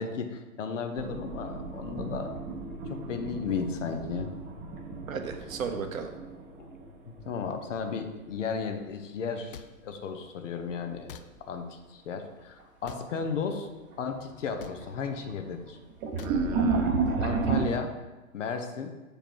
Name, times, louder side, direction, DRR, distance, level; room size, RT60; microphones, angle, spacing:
voice 1, 0.0-2.3 2.7-4.3 6.6-6.7 7.1-11.2 11.5-13.7 14.0-15.8 17.2-17.9 18.3-19.0, left 5 dB, 60° left, 6 dB, 1.0 m, -34 dB
sound 1, 1.0-7.8 8.1-8.9 10.6-11.0 11.5-11.6 12.6-12.7 13.1-13.5 13.9-17.6, right 4 dB, 25° right, 0.9 m, -33 dB
voice 2, 5.1-6.1 16.2-17.5, right 5 dB, 70° right, 6 dB, 1.0 m, -36 dB
sound 2, 9.5-9.7 11.1-11.3 12.8-13.1 14.6-14.8 16.2-16.4, left 9 dB, 40° left, 0.4 m, -44 dB
7.4 x 5.0 x 4.6 m, 1.2 s
figure-of-eight pair, 120°, 42 cm